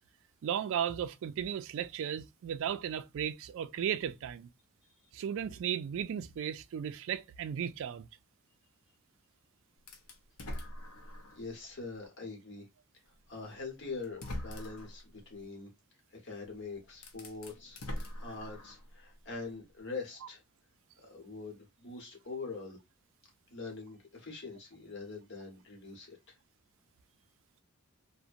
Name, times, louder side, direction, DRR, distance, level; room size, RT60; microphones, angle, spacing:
voice 1, 0.4-4.5 5.1-8.1, right 9 dB, 60° right, 0.3 m, -35 dB
sound 1, 9.9-11.5 12.0-12.1 13.4-13.5 14.0-15.0 16.4-16.5 16.9-18.9, left 1 dB, 75° left, 0.6 m, -42 dB
voice 2, 11.0-12.7 13.1-15.7 16.1-17.8 18.1-20.4 21.0-22.8 23.5-26.4, left 4 dB, 55° left, 1.0 m, -44 dB
2.7 x 2.1 x 2.4 m
head